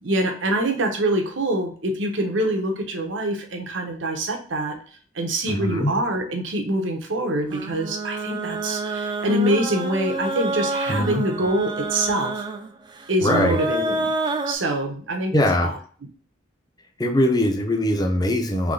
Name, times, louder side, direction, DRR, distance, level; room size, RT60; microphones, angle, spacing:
voice 1, 0.0-4.8 5.1-12.4 13.1-14.1 14.5-15.8, right 1 dB, 80° right, 3 dB, 0.9 m, -25 dB
voice 2, 5.5-5.9 10.9-11.2 13.2-13.6 15.3-15.7 17.0-18.7, left 1 dB, 20° left, 3 dB, 0.7 m, -21 dB
sound 1, 7.5-14.5, right 2 dB, 25° right, 0.4 m, -28 dB
3.5 x 3.2 x 3.8 m, 0.43 s
head